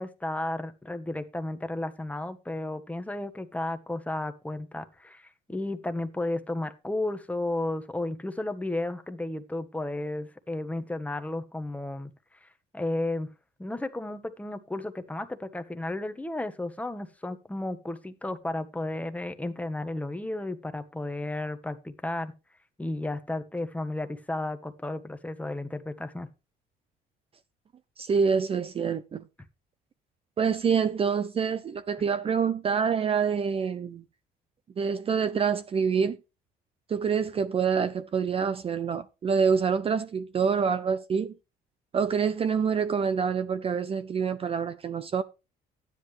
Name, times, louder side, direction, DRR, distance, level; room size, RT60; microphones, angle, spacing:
voice 1, 0.0-12.1 12.4-12.5 12.7-13.3 13.6-22.3 22.8-26.3, left 2 dB, 10° left, 1.2 m, -33 dB
voice 2, 28.0-29.2 30.4-34.0 34.8-36.2 36.9-41.3 41.9-45.2, right 6 dB, 35° right, 0.7 m, -26 dB
12.5 x 10.0 x 3.3 m
cardioid pair, 110°, 17 cm